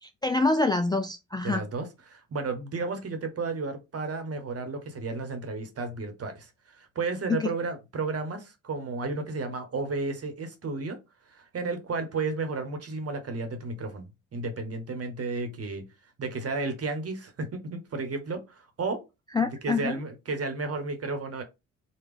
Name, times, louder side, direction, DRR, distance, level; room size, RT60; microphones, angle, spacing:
voice 1, 0.0-1.6 7.4-7.5 19.3-20.0, left 3 dB, 10° left, 0.4 m, -26 dB
voice 2, 1.4-11.0 11.3-15.8 16.2-19.0 19.6-21.4, right 3 dB, 40° right, 1.1 m, -33 dB
3.3 x 2.4 x 3.3 m
hypercardioid pair, 45°, 37 cm